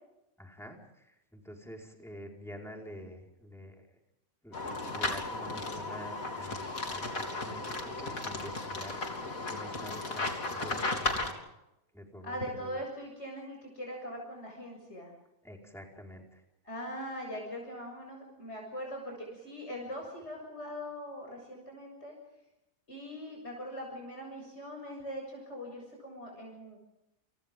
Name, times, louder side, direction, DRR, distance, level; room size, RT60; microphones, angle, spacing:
voice 1, 0.4-3.8 4.4-4.6 4.9-11.4 11.9-12.8 15.4-16.4, equal, ahead, 0 dB, 5.0 m, -47 dB
sound 1, 4.5-11.3, left 2 dB, 80° left, 3.9 m, -35 dB
voice 2, 12.2-15.1 16.6-22.1 22.9-26.8, equal, 50° left, 0 dB, 7.4 m, -41 dB
29.5 x 29.0 x 3.8 m, 0.89 s
omnidirectional pair, 1.5 m